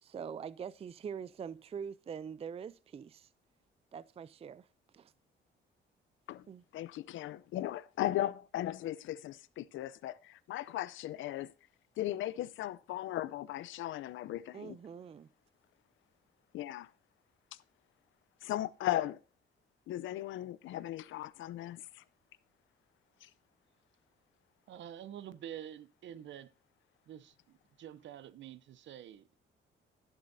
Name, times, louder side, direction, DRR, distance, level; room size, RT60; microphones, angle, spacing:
voice 1, 0.0-3.3 3.9-4.7 4.9-5.1 6.5-6.6 14.5-15.3, right 7 dB, 30° right, 0.4 m, -44 dB
voice 2, 6.7-11.5 12.0-14.8 16.5-16.9 18.4-19.2 19.9-22.0 23.2-23.3, left 13 dB, 80° left, 0.6 m, -37 dB
voice 3, 24.7-26.5 27.1-29.4, right 10 dB, 70° right, 0.7 m, -48 dB
16.0 x 7.2 x 2.7 m
cardioid pair, 90°, 20 cm